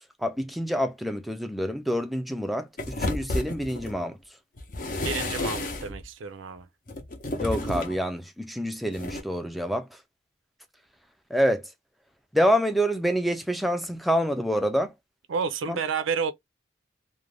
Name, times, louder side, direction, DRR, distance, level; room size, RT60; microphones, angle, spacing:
voice 1, 0.2-4.2 7.4-9.9 11.3-11.7 12.3-14.9 15.7-15.8, equal, ahead, 0.3 m, -27 dB
sound 1, 2.8-4.0 4.6-6.0 6.9-8.0 8.9-9.2, left 2 dB, 45° left, 0.6 m, -31 dB
voice 2, 5.0-6.7 15.3-16.3, right 5 dB, 85° right, 0.5 m, -30 dB
2.4 x 2.1 x 3.2 m
head